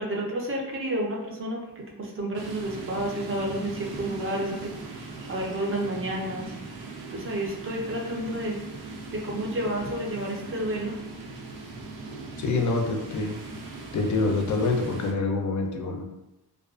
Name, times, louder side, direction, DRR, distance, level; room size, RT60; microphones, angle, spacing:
voice 1, 0.0-6.5 7.1-11.0, right 1 dB, 35° right, -2 dB, 0.6 m, -31 dB
sound 1, 2.3-15.1, right 3 dB, 80° right, 0.5 m, -39 dB
voice 2, 12.4-13.4 13.9-16.1, left 3 dB, 50° left, 3 dB, 0.4 m, -26 dB
2.4 x 2.3 x 2.3 m, 0.94 s
wide cardioid pair, 105°, 38 cm